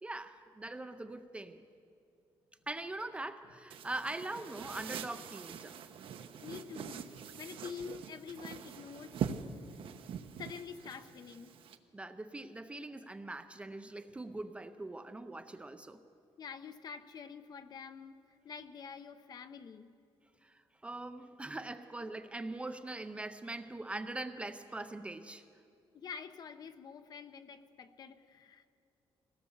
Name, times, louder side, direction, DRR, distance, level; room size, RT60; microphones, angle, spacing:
voice 1, 0.0-1.7 2.7-5.8 11.9-16.0 20.4-25.4, right 2 dB, 10° right, 8 dB, 0.6 m, -42 dB
sound 1, 3.7-11.8, right 7 dB, 60° right, 1.0 m, -43 dB
voice 2, 6.4-7.1 7.4-9.2 10.4-11.5 16.4-19.9 25.9-28.7, left 6 dB, 40° left, 10 dB, 0.8 m, -47 dB
22.5 x 18.0 x 7.2 m, 2.5 s
cardioid pair, 175°, 10 cm